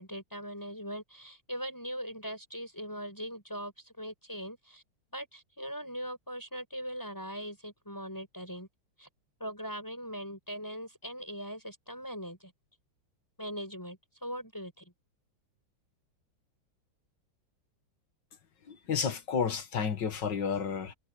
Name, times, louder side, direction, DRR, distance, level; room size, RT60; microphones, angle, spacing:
voice 1, 0.0-4.8 5.1-8.7 9.0-9.1 9.4-12.5 13.4-14.9, equal, 10° left, 8.1 m, -40 dB
voice 2, 18.7-20.9, left 6 dB, 60° left, 2.3 m, -31 dB
omnidirectional pair, 2.2 m